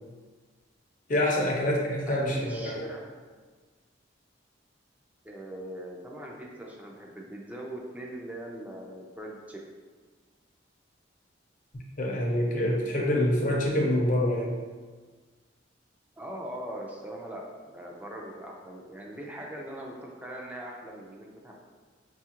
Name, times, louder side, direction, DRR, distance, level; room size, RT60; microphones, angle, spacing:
voice 1, 1.1-2.8 12.0-14.5, left 1 dB, 45° left, -1 dB, 0.7 m, -26 dB
voice 2, 2.1-3.1 5.2-9.6 16.2-21.5, right 1 dB, 10° right, -1 dB, 0.5 m, -41 dB
5.0 x 2.4 x 2.9 m, 1.4 s
head